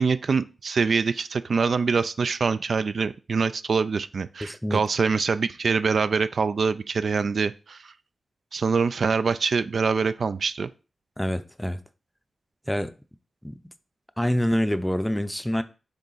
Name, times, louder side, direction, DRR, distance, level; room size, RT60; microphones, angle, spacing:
voice 1, 0.0-7.9 8.5-10.7, right 5 dB, 65° right, 0.4 m, -24 dB
voice 2, 4.4-4.8 11.2-11.8 12.7-12.9 13.4-13.6 14.2-15.6, equal, 5° left, 0.5 m, -26 dB
6.6 x 3.5 x 4.0 m
cardioid pair, 70°, 0 cm